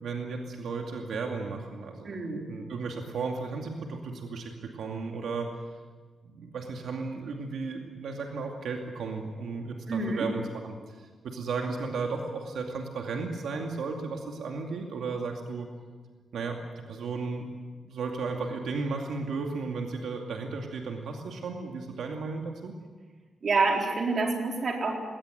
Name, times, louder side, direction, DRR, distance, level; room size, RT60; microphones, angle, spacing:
voice 1, 0.0-2.1 2.5-5.5 6.2-15.7 16.3-16.6 16.9-17.5 17.8-22.7, right 4 dB, 80° right, 2 dB, 2.4 m, -34 dB
voice 2, 2.0-2.5 9.9-10.3 23.4-24.9, right 3 dB, 40° right, 1 dB, 4.1 m, -27 dB
20.5 x 19.0 x 9.4 m, 1.4 s
wide cardioid pair, 170°, 0 cm